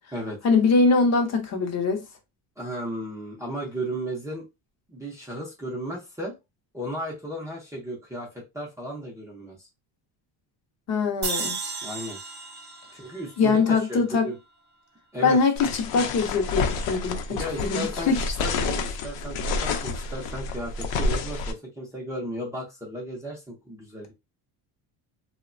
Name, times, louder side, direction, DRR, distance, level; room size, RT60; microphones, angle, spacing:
voice 1, 0.4-2.0 10.9-11.6 13.4-14.3 15.2-18.2, left 4 dB, 40° left, 0.6 m, -22 dB
voice 2, 2.6-4.4 4.9-6.3 6.7-9.6 11.8-12.2 12.9-14.4 15.1-15.4 17.3-18.1 18.4-24.1, equal, 10° right, 0.5 m, -35 dB
sound 1, 11.2-14.5, right 4 dB, 40° right, 0.9 m, -35 dB
sound 2, 15.6-21.5, left 4 dB, 85° left, 0.6 m, -29 dB
3.0 x 2.1 x 2.4 m
cardioid pair, 155°, 42 cm